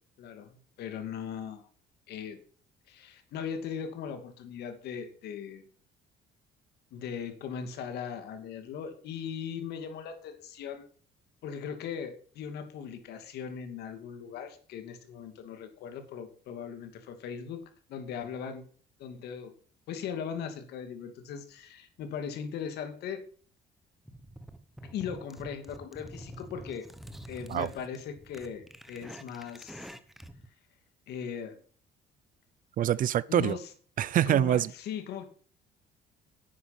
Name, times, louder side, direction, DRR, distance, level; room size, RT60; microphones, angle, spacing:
voice 1, 0.2-1.7 2.1-2.4 2.9-5.6 6.9-10.9 11.4-17.6 17.9-18.6 19.0-19.5 19.9-23.2 24.9-26.9 27.3-29.9 31.1-31.6 33.3-33.7 34.3-35.3, left 7 dB, 75° left, 2.6 m, -39 dB
sound 1, 24.0-30.5, right 1 dB, ahead, 1.1 m, -47 dB
voice 2, 32.8-33.6 34.0-34.7, right 11 dB, 55° right, 0.6 m, -25 dB
10.5 x 9.5 x 6.1 m
cardioid pair, 110°, 17 cm